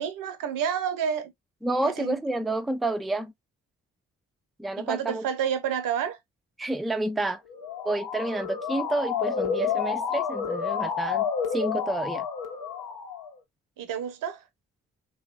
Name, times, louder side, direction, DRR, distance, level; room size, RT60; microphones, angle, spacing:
voice 1, 0.0-1.3 1.8-2.2 4.8-6.2 13.8-14.4, right 8 dB, 70° right, 0.8 m, -29 dB
voice 2, 1.6-3.3 4.6-5.3 6.6-7.4 7.8-12.3, right 2 dB, ahead, 0.4 m, -29 dB
Motor vehicle (road) / Siren, 7.5-13.4, left 7 dB, 70° left, 0.8 m, -30 dB
3.2 x 2.4 x 2.4 m
hypercardioid pair, 40°, 34 cm